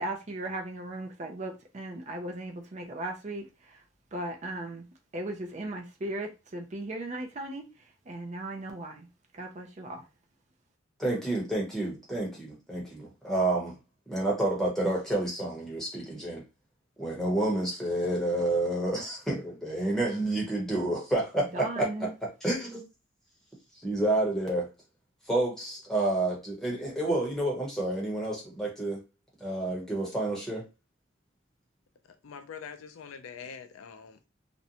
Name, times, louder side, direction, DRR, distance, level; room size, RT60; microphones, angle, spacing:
voice 1, 0.0-3.8 4.1-4.9 5.1-7.7 8.1-9.1 9.3-10.0 21.4-22.1, right 1 dB, 35° right, 0.4 m, -37 dB
voice 2, 11.0-13.8 14.1-16.4 17.0-21.9 22.4-22.8 23.8-24.7 25.3-29.0 29.4-30.6, right 1 dB, ahead, 0.8 m, -29 dB
voice 3, 32.2-34.3, left 6 dB, 90° left, 0.4 m, -44 dB
2.5 x 2.1 x 2.8 m
head